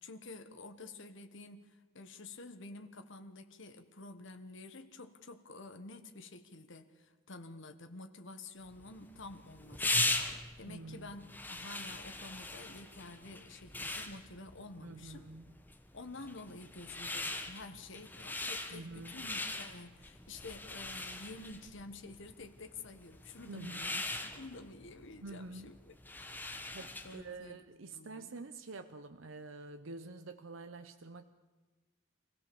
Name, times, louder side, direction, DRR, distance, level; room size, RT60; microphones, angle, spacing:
voice 1, 0.0-15.3 15.9-25.8 26.4-27.6 27.9-28.3, left 3 dB, 65° left, 7 dB, 1.4 m, -50 dB
sound 1, 8.7-27.3, left 2 dB, 10° left, 1.4 m, -40 dB
voice 2, 10.7-11.1 14.8-15.5 18.7-19.2 23.4-23.9 25.2-25.7 26.7-31.2, right 3 dB, 70° right, 9 dB, 0.8 m, -47 dB
24.5 x 16.5 x 7.1 m, 1.3 s
head